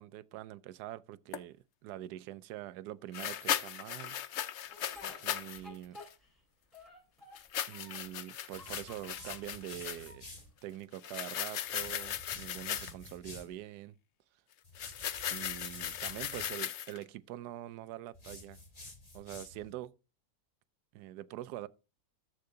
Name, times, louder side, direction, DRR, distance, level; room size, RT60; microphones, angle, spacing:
voice 1, 0.0-4.2 5.2-6.0 7.7-10.2 10.6-14.0 15.3-18.6 19.1-19.9 20.9-21.7, right 13 dB, 75° right, 1.1 m, -44 dB
sound 1, 1.3-1.4 3.1-5.6 5.9-6.1 7.3-10.1 10.9-13.1 14.7-17.0, left 10 dB, 80° left, 0.6 m, -37 dB
Speech, 4.7-6.4 6.7-8.1 8.5-9.5 10.0-10.8, left 2 dB, ahead, 3.7 m, -53 dB
sound 2, 8.5-10.5 11.6-13.6 14.6-16.5 18.1-19.7, left 2 dB, 20° left, 1.7 m, -51 dB
13.5 x 4.7 x 3.8 m
omnidirectional pair, 1.9 m